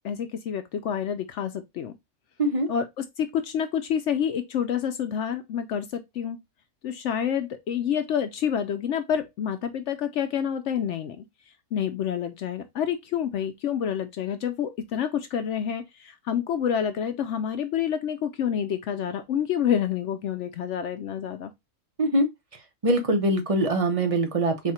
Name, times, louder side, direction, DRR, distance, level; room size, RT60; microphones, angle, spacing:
voice 1, 0.0-1.9 2.7-6.4 6.8-11.2 11.7-21.5, left 8 dB, 65° left, 0.8 m, -28 dB
voice 2, 22.8-24.7, right 1 dB, 30° right, 0.7 m, -23 dB
4.2 x 2.4 x 4.1 m
omnidirectional pair, 1.5 m